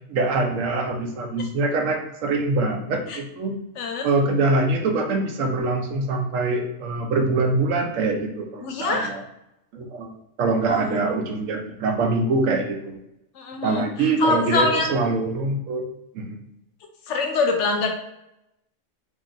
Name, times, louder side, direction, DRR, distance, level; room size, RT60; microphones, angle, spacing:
voice 1, 0.1-3.6 4.0-9.2 9.7-13.0 13.6-15.8 16.1-16.4, right 3 dB, 90° right, 3 dB, 1.0 m, -24 dB
voice 2, 3.8-4.1 8.6-9.1 10.7-11.0 13.3-14.9 17.1-17.9, left 3 dB, 70° left, 3 dB, 0.9 m, -24 dB
2.9 x 2.7 x 3.8 m, 0.85 s
omnidirectional pair, 1.3 m